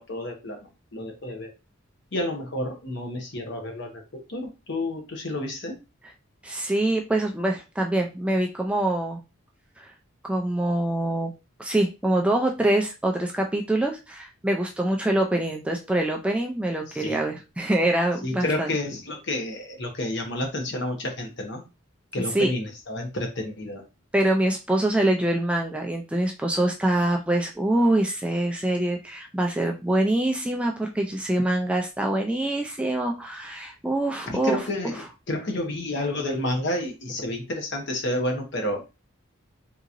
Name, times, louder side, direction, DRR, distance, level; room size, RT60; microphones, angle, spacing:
voice 1, 0.0-1.5 2.1-4.0 4.3-5.8 16.9-17.2 18.2-21.6 22.1-23.8 34.3-38.8, left 1 dB, 55° left, 3 dB, 0.9 m, -30 dB
voice 2, 6.4-9.2 9.8-9.9 10.2-11.3 11.6-18.7 22.3-22.5 24.1-34.6, right 1 dB, 5° right, 1 dB, 0.3 m, -24 dB
3.7 x 2.9 x 2.5 m, 0.28 s
head